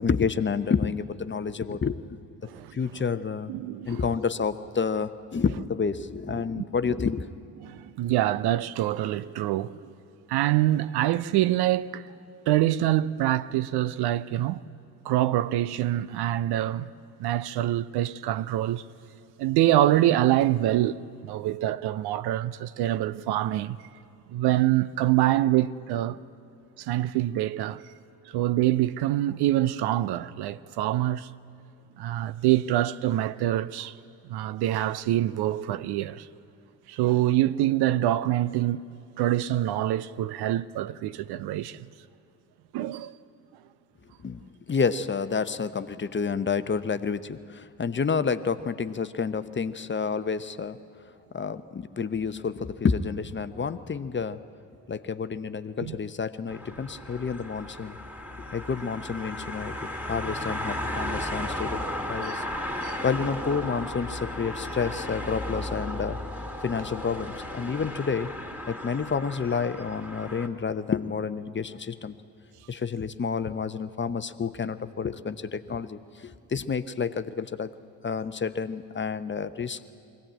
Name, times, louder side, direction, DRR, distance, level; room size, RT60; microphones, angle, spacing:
voice 1, 0.0-2.0 2.7-3.5 3.9-7.3 44.2-44.4 44.7-50.8 51.3-54.4 54.9-58.0 58.5-61.8 62.1-62.4 63.0-66.2 66.6-68.3 68.7-72.1 72.7-77.7 78.0-79.8, left 5 dB, 25° left, 0.8 m, -29 dB
voice 2, 2.4-2.8 3.5-4.0 6.5-6.7 7.6-9.8 10.3-12.1 12.5-14.6 15.0-16.9 17.2-18.8 19.4-23.8 24.3-26.2 26.8-27.8 28.3-31.3 32.0-34.0 34.3-36.3 36.9-38.8 39.2-41.9 42.7-43.1 55.8-56.0 62.2-62.4 62.8-63.0, right 14 dB, 60° right, 0.6 m, -25 dB
sound 1, 56.5-70.5, left 1 dB, 5° right, 2.6 m, -35 dB
22.0 x 16.0 x 8.9 m
hypercardioid pair, 45°, 44 cm